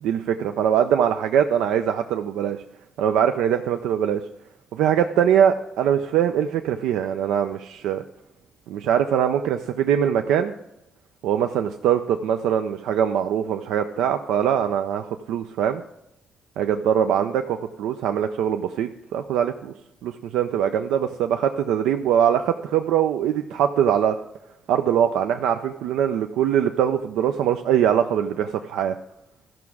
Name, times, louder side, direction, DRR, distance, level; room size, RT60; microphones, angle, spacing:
voice 1, 0.0-2.6 3.0-4.2 4.7-8.0 8.7-10.5 11.2-15.8 16.6-17.4 17.8-19.7 20.0-24.2 24.7-29.0, right 9 dB, 90° right, 7 dB, 0.4 m, -22 dB
13.5 x 6.0 x 4.8 m, 0.84 s
cardioid pair, 90°, 0 cm